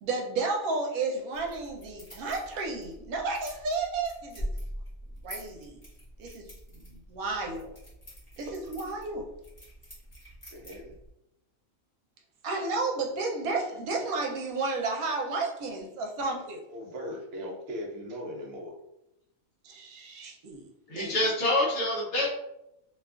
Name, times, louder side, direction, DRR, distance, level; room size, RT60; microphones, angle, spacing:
voice 1, 0.0-4.5 5.2-5.8 6.2-7.8 8.4-9.3 12.4-16.6 19.6-21.1, right 3 dB, 85° right, 1 dB, 1.1 m, -32 dB
sound 1, 1.3-11.1, equal, 25° left, 0.9 m, -44 dB
voice 2, 10.5-10.9 16.7-18.7, equal, 60° right, 0 dB, 0.7 m, -39 dB
voice 3, 20.9-22.3, left 1 dB, 60° left, -4 dB, 1.0 m, -26 dB
2.7 x 2.3 x 2.3 m, 0.85 s
omnidirectional pair, 1.5 m